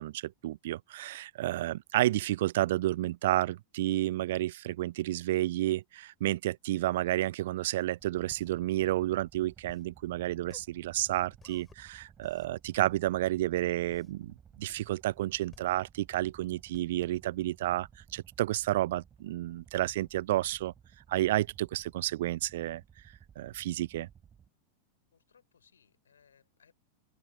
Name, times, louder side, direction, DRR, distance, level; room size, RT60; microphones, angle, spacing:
voice 1, 0.0-20.7 21.1-22.8 23.4-24.1, right 15 dB, 55° right, 0.3 m, -31 dB
sound 1, 8.0-24.5, right 8 dB, 20° right, 7.8 m, -58 dB
sound 2, 8.3-18.2, left 6 dB, 20° left, 6.3 m, -59 dB
voice 2, 25.1-26.7, left 7 dB, 70° left, 7.5 m, -65 dB
figure-of-eight pair, 90°, 0 cm